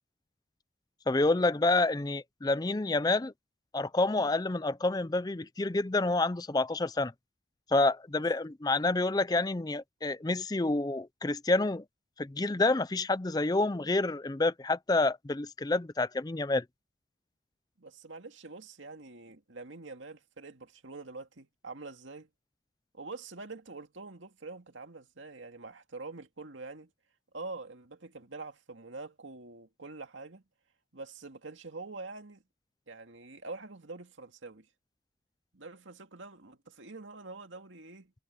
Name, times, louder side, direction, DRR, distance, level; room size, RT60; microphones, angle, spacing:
voice 1, 1.1-3.3 3.7-7.1 7.7-11.8 12.2-16.6, left 2 dB, 20° left, 0.5 m, -28 dB
voice 2, 17.8-22.3 22.9-26.9 27.3-30.4 30.9-32.4 32.9-34.7 35.5-38.1, right 3 dB, 80° right, 2.2 m, -45 dB
head